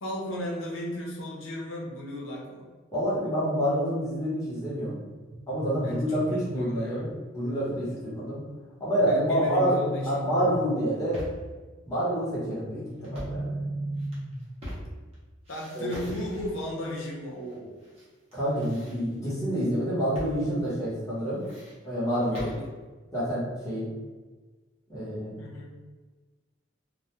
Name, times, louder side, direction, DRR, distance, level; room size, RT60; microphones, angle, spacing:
voice 1, 0.0-2.7 5.8-7.1 9.0-10.2 15.5-17.8 22.3-22.7 25.4-25.7, equal, 85° left, -3 dB, 0.6 m, -36 dB
voice 2, 2.9-5.0 5.5-8.4 8.8-11.2 11.8-13.6 15.7-15.9 18.3-21.4 21.8-22.5 23.1-23.9 24.9-25.4, equal, 15° left, -10 dB, 0.8 m, -28 dB
sound 1, 5.3-7.3 9.0-11.0 12.7-14.7, right 1 dB, 55° right, 0.3 m, -36 dB
sound 2, 10.8-11.5 13.0-13.5 14.0-15.1 15.4-16.7 17.5-18.1 18.3-19.4 20.1-20.4 20.6-20.7 21.2-22.7, equal, 30° right, 0.7 m, -42 dB
2.2 x 2.1 x 2.9 m, 1.3 s
head